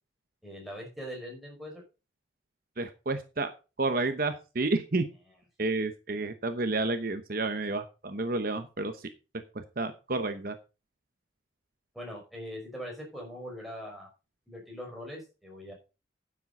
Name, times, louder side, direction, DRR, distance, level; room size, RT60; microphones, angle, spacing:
voice 1, 0.4-1.8 11.9-14.1 14.5-15.7, equal, ahead, -2 dB, 5.3 m, -41 dB
voice 2, 2.8-3.5 3.8-5.0 5.6-9.1 9.5-10.6, right 2 dB, 50° right, 8 dB, 1.0 m, -30 dB
10.0 x 7.6 x 5.4 m, 0.31 s
head